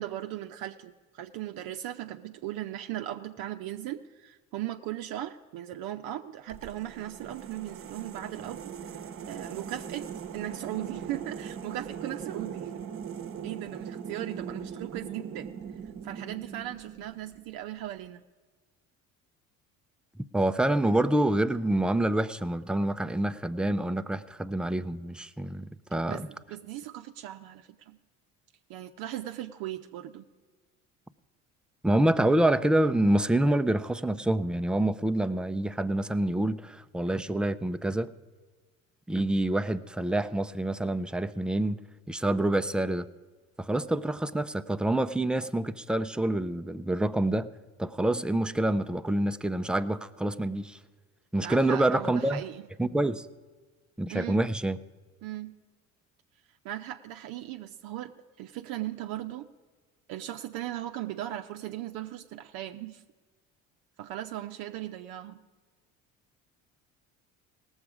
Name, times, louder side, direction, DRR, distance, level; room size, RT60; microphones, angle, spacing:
voice 1, 0.0-9.0 9.3-10.1 10.3-12.7 13.4-15.6 16.0-18.2 26.1-28.0 28.7-30.3 51.4-52.6 54.1-54.4 55.2-55.5 56.6-58.1 58.4-59.5 60.1-63.0 64.0-65.4, right 13 dB, 60° right, 5 dB, 0.7 m, -38 dB
sound 1, 6.5-17.6, right 7 dB, 35° right, 1.0 m, -40 dB
voice 2, 20.3-26.3 31.8-38.1 39.1-41.8 42.1-43.1 43.6-47.5 47.8-50.8 51.3-52.4 52.8-53.3 54.0-54.8, right 1 dB, ahead, 10 dB, 0.4 m, -27 dB
18.5 x 7.2 x 4.9 m, 1.4 s
hypercardioid pair, 65°, 39 cm